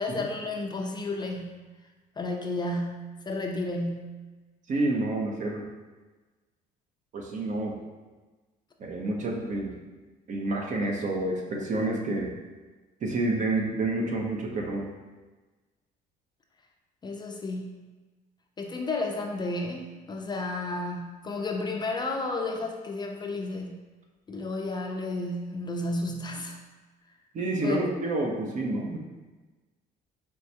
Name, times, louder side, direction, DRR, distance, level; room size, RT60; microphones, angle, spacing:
voice 1, 0.0-1.6 2.2-4.2 17.0-17.8 18.6-23.8 24.3-26.6 27.6-27.8, left 2 dB, 25° left, 2 dB, 0.4 m, -32 dB
voice 2, 4.7-5.7 7.1-7.8 8.8-9.8 10.3-12.3 13.0-14.9 27.3-29.0, right 2 dB, 45° right, 0 dB, 0.8 m, -29 dB
4.6 x 3.4 x 2.8 m, 1.2 s
cardioid pair, 110°, 17 cm